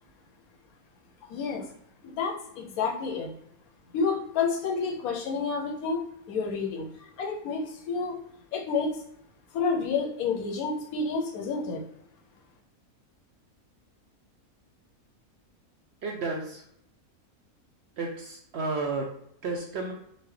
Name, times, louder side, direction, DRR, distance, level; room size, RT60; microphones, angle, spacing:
voice 1, 1.2-1.7 2.0-3.4 3.9-8.2 8.5-9.0 9.5-11.8, left 4 dB, 85° left, 3 dB, 1.1 m, -30 dB
voice 2, 16.0-16.6 18.0-19.1 19.4-19.9, right 3 dB, 65° right, 0 dB, 0.6 m, -32 dB
4.1 x 2.2 x 3.1 m, 0.72 s
omnidirectional pair, 1.5 m